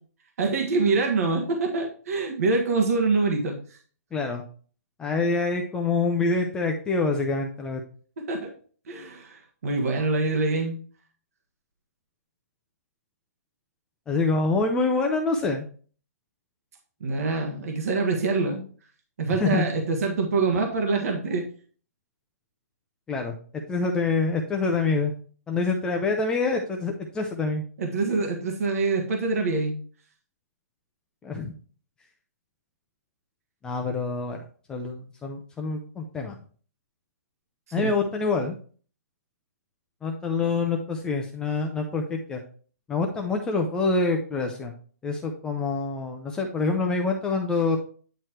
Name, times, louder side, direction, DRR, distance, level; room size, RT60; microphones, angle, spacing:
voice 1, 0.4-3.8 8.3-8.5 8.9-10.7 17.0-18.6 19.2-21.5 27.8-29.8 37.8-37.9, right 3 dB, 65° right, 2 dB, 1.5 m, -25 dB
voice 2, 4.1-4.4 5.0-7.8 14.1-15.7 19.3-19.6 23.1-25.1 25.5-27.6 31.2-31.5 33.6-34.4 34.7-36.4 37.7-38.6 40.0-42.4 42.9-44.7 45.0-47.8, left 3 dB, 10° left, 2 dB, 0.5 m, -26 dB
9.3 x 3.1 x 4.4 m, 0.43 s
hypercardioid pair, 155°, 9 cm